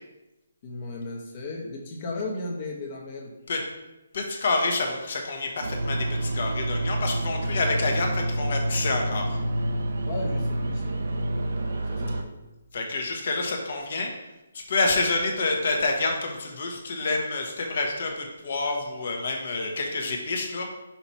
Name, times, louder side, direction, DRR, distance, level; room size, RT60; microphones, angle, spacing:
voice 1, 0.6-3.3 10.0-11.4 11.9-12.3, left 2 dB, 35° left, -1 dB, 1.0 m, -35 dB
voice 2, 4.1-9.4 12.7-14.1 14.5-20.7, left 3 dB, 55° left, 2 dB, 1.2 m, -28 dB
sound 1, 5.6-12.2, right 1 dB, 70° right, 0.8 m, -28 dB
5.8 x 2.9 x 5.5 m, 1.0 s
hypercardioid pair, 160°, 0 cm